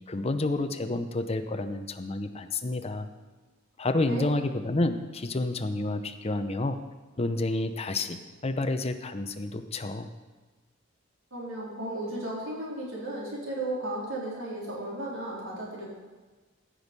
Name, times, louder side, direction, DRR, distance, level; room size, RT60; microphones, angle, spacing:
voice 1, 0.1-3.1 3.8-6.8 7.2-10.1, left 2 dB, 30° left, 8 dB, 0.7 m, -29 dB
voice 2, 11.3-15.9, right 1 dB, 85° right, -5 dB, 3.8 m, -35 dB
15.0 x 6.3 x 5.3 m, 1.3 s
head